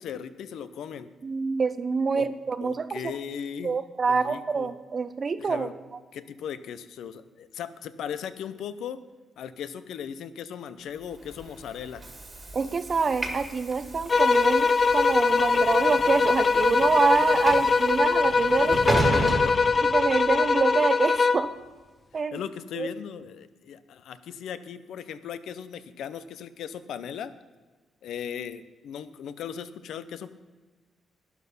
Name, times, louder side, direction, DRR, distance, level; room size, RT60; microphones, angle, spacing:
voice 1, 0.0-1.1 2.1-2.3 2.6-3.8 4.1-4.7 5.4-5.7 6.1-9.0 9.4-12.0 17.5-17.7 18.6-19.6 22.3-27.3 28.0-30.3, left 8 dB, 80° left, 13 dB, 0.6 m, -37 dB
voice 2, 1.2-3.1 3.6-5.7 12.5-18.8 19.8-21.5 22.1-22.4 22.8-22.9, right 5 dB, 35° right, 13 dB, 0.7 m, -26 dB
Train / Sliding door, 11.2-20.4, right 2 dB, 20° right, 1.7 m, -34 dB
sound 1, 14.1-21.5, left 4 dB, 35° left, 0.4 m, -22 dB
12.0 x 9.6 x 5.5 m, 1.3 s
cardioid pair, 130°, 0 cm